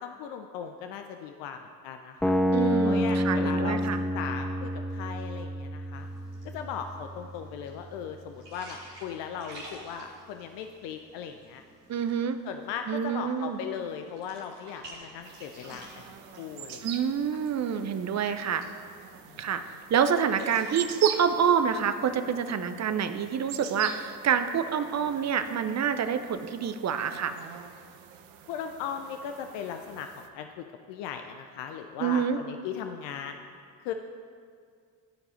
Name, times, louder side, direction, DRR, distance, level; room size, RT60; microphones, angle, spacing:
voice 1, 0.0-1.6 1.8-2.4 2.8-3.8 4.1-6.1 6.4-11.6 12.4-15.9 16.4-16.8 19.3-19.4 28.5-33.4 33.8-33.9, left 8 dB, 60° left, 6 dB, 0.6 m, -38 dB
sound 1, 2.2-8.2, equal, 5° left, 0.3 m, -29 dB
voice 2, 2.5-4.0 11.9-12.4 12.9-13.6 16.8-18.6 19.4-19.6 19.9-27.3 32.0-32.4, right 7 dB, 35° right, 9 dB, 0.7 m, -27 dB
sound 2, 5.9-20.8, right 1 dB, 85° right, 2.1 m, -52 dB
sound 3, 15.2-30.3, right 9 dB, 70° right, 0.8 m, -44 dB
12.5 x 4.8 x 5.1 m, 2.1 s
hypercardioid pair, 50°, 48 cm